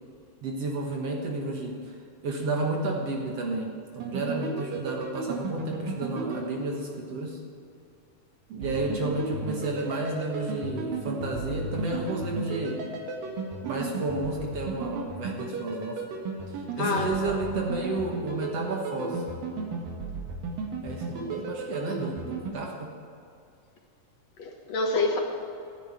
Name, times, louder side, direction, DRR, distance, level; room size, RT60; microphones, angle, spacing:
voice 1, 0.4-2.0 2.2-7.4 8.5-12.9 13.6-16.0 16.5-19.3 20.8-22.9, right 2 dB, 55° right, 0 dB, 2.2 m, -31 dB
sound 1, 4.0-7.3 8.6-22.5, right 3 dB, 85° right, 3.3 m, -35 dB
voice 2, 16.8-17.4 19.6-19.8 24.4-25.2, left 3 dB, 60° left, 1 dB, 2.2 m, -28 dB
13.5 x 9.9 x 8.9 m, 2.4 s
omnidirectional pair, 3.9 m